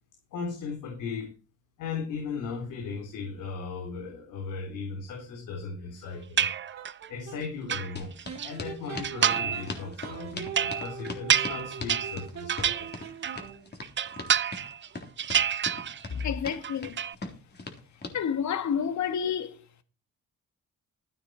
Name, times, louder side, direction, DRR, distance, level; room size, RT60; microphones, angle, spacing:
voice 1, 0.3-1.3 1.8-6.5 7.1-8.1 8.4-12.9, left 5 dB, 90° left, 3.3 m, -37 dB
sound 1, 6.0-7.4 8.3-13.7, right 6 dB, 60° right, 2.5 m, -42 dB
sound 2, 6.4-7.1 7.4-8.5 9.0-9.7 10.0-13.5 13.8-14.9 15.2-16.3 16.5-17.1, right 8 dB, 40° right, 0.6 m, -28 dB
sound 3, 8.0-18.2, left 3 dB, 35° left, 3.7 m, -40 dB
voice 2, 16.1-17.0 18.1-19.8, left 7 dB, 65° left, 1.9 m, -30 dB
13.5 x 9.7 x 4.5 m
cardioid pair, 90°, 30 cm